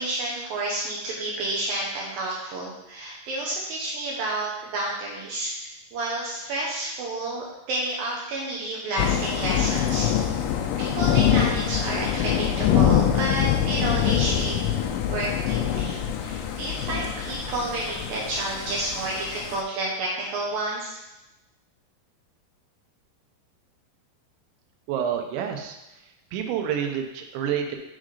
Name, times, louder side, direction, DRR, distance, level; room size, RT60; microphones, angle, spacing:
voice 1, 0.0-5.5 5.9-10.1 10.3-10.5 10.8-14.6 14.8-21.0, right 2 dB, 75° right, -4 dB, 2.3 m, -30 dB
Thunder / Rain, 9.0-19.6, left 9 dB, 85° left, 2.8 m, -24 dB
voice 2, 24.9-25.8 26.3-27.8, right 8 dB, 90° right, 4 dB, 3.1 m, -28 dB
7.3 x 3.7 x 4.9 m, 0.95 s
omnidirectional pair, 5.1 m